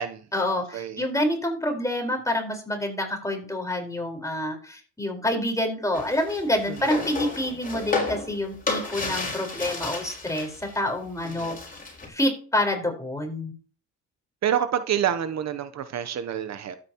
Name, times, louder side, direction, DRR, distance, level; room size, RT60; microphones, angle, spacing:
voice 1, 0.3-11.6 12.1-13.5, left 1 dB, 10° left, 4.4 m, -27 dB
sound 1, 5.9-10.8 11.1-12.1, left 3 dB, 30° left, 4.5 m, -32 dB
voice 2, 6.7-7.0 11.4-11.6 14.4-16.8, right 9 dB, 60° right, 0.9 m, -28 dB
12.5 x 9.1 x 3.0 m
cardioid pair, 90°, 30 cm